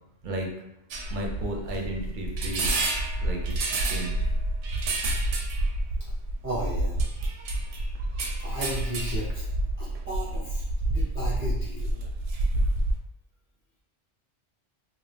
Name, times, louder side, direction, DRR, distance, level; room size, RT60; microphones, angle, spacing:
sound 1, 0.9-13.0, right 1 dB, 85° right, 0.9 m, -28 dB
voice 1, 1.1-2.9 3.2-4.3, right 1 dB, 55° right, 0 dB, 0.6 m, -34 dB
voice 2, 6.4-7.0 8.4-9.5 9.8-10.6 10.9-11.9, equal, 15° right, -7 dB, 0.5 m, -34 dB
2.7 x 2.7 x 3.3 m, 0.83 s
omnidirectional pair, 1.2 m